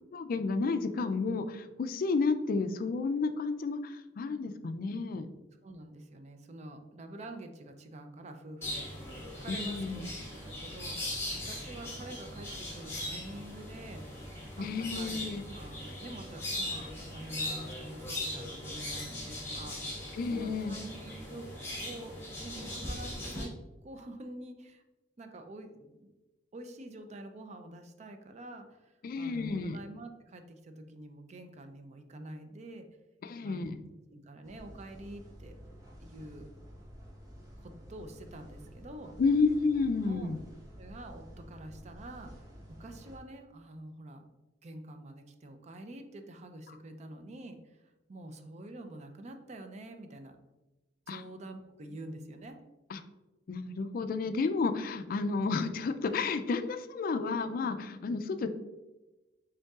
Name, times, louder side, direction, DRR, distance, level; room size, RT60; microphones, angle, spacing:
voice 1, 0.1-5.3 9.5-10.1 14.6-15.4 20.1-20.7 29.0-29.8 33.2-33.8 39.2-40.4 51.1-51.2 52.9-53.0 53.5-58.5, left 4 dB, 50° left, 10 dB, 0.3 m, -31 dB
voice 2, 5.6-10.1 10.4-14.3 14.6-21.5 21.8-23.5 23.8-24.8 25.2-26.1 26.5-32.8 33.4-33.7 34.1-35.5 36.0-36.5 37.6-39.2 40.1-40.3 40.8-44.2 44.6-50.4 51.1-52.6, right 1 dB, 40° right, 6 dB, 0.4 m, -47 dB
sound 1, 8.6-23.4, left 1 dB, 15° left, 1.4 m, -39 dB
sound 2, 34.4-43.2, equal, 20° right, 0.9 m, -51 dB
5.3 x 3.7 x 2.3 m, 1.1 s
head